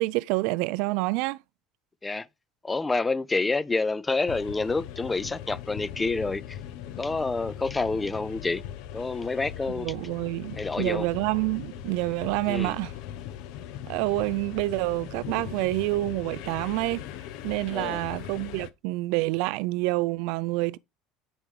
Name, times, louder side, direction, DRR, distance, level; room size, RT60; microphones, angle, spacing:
voice 1, 0.0-1.4 9.7-12.9 13.9-17.0 17.4-20.8, right 21 dB, 75° right, 0.3 m, -28 dB
voice 2, 2.6-6.6 7.0-8.6 8.9-9.9 10.6-11.1 12.5-12.7 17.7-18.0, left 3 dB, 15° left, 0.3 m, -28 dB
sound 1, 4.3-18.7, left 11 dB, 70° left, 0.6 m, -40 dB
7.0 x 5.3 x 3.2 m
cardioid pair, 140°, 0 cm